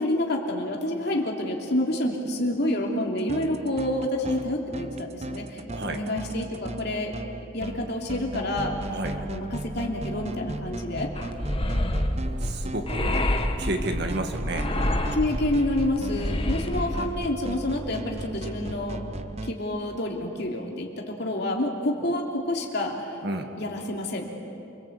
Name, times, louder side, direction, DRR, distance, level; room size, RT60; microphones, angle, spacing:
voice 1, 0.0-7.2 7.5-8.8 9.2-11.1 15.1-19.0 19.4-23.2 23.6-24.2, left 1 dB, 50° left, 0 dB, 3.1 m, -28 dB
sound 1, 3.2-19.5, right 1 dB, 30° right, 0.8 m, -36 dB
sound 2, 11.2-17.1, left 1 dB, 25° left, 1.3 m, -28 dB
voice 2, 12.1-13.3 13.6-14.7 16.8-16.9 23.2-23.5, right 1 dB, 50° right, 5 dB, 1.8 m, -32 dB
28.0 x 22.5 x 8.2 m, 2.8 s
head